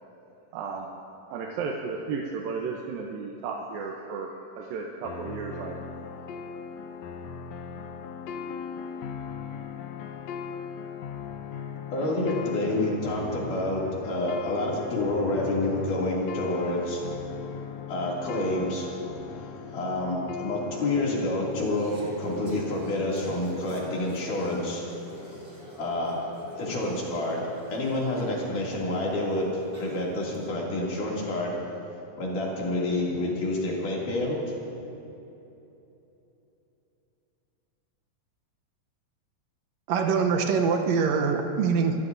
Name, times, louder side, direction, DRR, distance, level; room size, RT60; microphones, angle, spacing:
voice 1, 0.5-0.9 1.3-5.8, right 5 dB, 90° right, 0 dB, 2.7 m, -34 dB
sound 1, 5.0-21.0, left 6 dB, 85° left, 1.5 m, -38 dB
voice 2, 11.9-17.0 17.9-18.9 19.3-24.8 25.2-25.4 25.8-26.1 26.6-31.6 32.2-34.4, left 2 dB, 65° left, -4 dB, 4.2 m, -28 dB
Conversation / Chatter, 21.5-30.4, equal, 15° right, 2.9 m, -46 dB
voice 3, 39.9-41.9, right 5 dB, 70° right, 4 dB, 1.7 m, -24 dB
27.5 x 14.5 x 2.7 m, 3.0 s
omnidirectional pair, 4.0 m